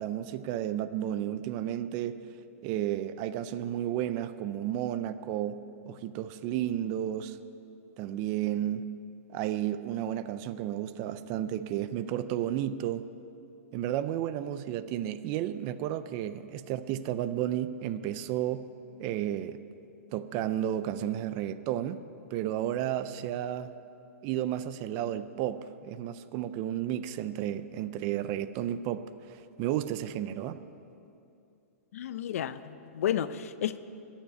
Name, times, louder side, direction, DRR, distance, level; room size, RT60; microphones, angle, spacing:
voice 1, 0.0-2.2 2.6-5.6 5.9-7.4 8.0-8.9 9.3-13.0 13.7-18.7 19.0-19.6 20.1-22.0 22.3-23.7 24.2-29.0 29.3-30.6, right 11 dB, 30° right, 0.4 m, -32 dB
voice 2, 31.9-33.8, left 10 dB, 60° left, 0.6 m, -32 dB
15.0 x 7.2 x 9.2 m
hypercardioid pair, 160°, 8 cm